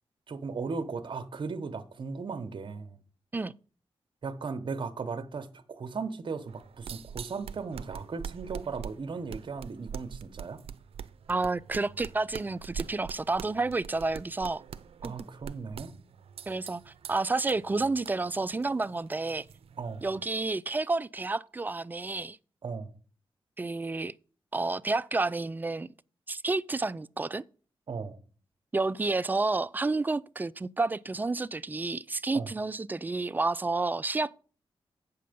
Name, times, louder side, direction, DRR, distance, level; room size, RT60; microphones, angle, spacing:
voice 1, 0.3-3.0 4.2-10.6 15.0-15.9 19.8-20.1 22.6-22.9 27.9-28.2 32.3-32.5, right 4 dB, 55° right, 1.0 m, -37 dB
sound 1, 6.5-20.3, right 7 dB, 80° right, 0.5 m, -44 dB
voice 2, 11.3-14.6 15.0-15.1 16.5-19.4 20.0-22.4 23.6-24.1 24.5-25.9 26.3-27.4 28.7-34.4, right 3 dB, 20° right, 0.3 m, -30 dB
8.5 x 6.8 x 5.2 m
wide cardioid pair, 95°, 10 cm